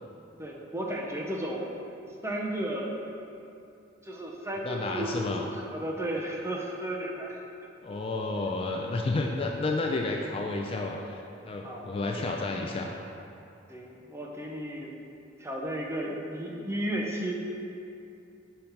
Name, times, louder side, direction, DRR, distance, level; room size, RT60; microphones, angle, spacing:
voice 1, 0.4-1.7 2.2-3.0 4.0-7.4 11.6-11.9 13.7-14.9 15.4-17.3, right 1 dB, 15° right, -2 dB, 0.7 m, -34 dB
voice 2, 4.6-5.4 7.8-12.9, left 2 dB, 30° left, 1 dB, 0.3 m, -31 dB
5.6 x 5.1 x 4.4 m, 2.6 s
head